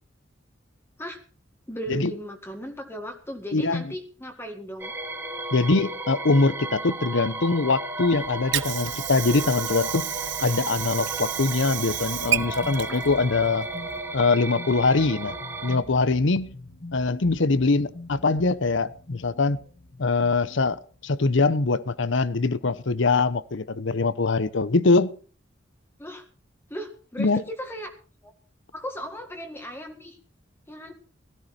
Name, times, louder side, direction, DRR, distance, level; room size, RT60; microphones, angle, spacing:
voice 1, 1.7-4.9 26.0-26.3 26.7-27.9 28.2-28.3 28.7-30.2 30.7-30.9, equal, 10° left, 1.8 m, -36 dB
voice 2, 3.5-3.8 5.5-10.1 10.4-13.7 14.1-15.4 15.6-16.5 16.9-19.6 20.0-25.1 27.2-27.4, left 3 dB, 70° left, 0.8 m, -23 dB
sound 1, 4.8-15.8, right 2 dB, 10° right, 2.4 m, -34 dB
Water / Sink (filling or washing), 8.0-14.0, right 13 dB, 65° right, 0.7 m, -32 dB
sound 2, 11.8-21.4, left 2 dB, 40° left, 1.2 m, -45 dB
17.0 x 13.5 x 4.3 m
head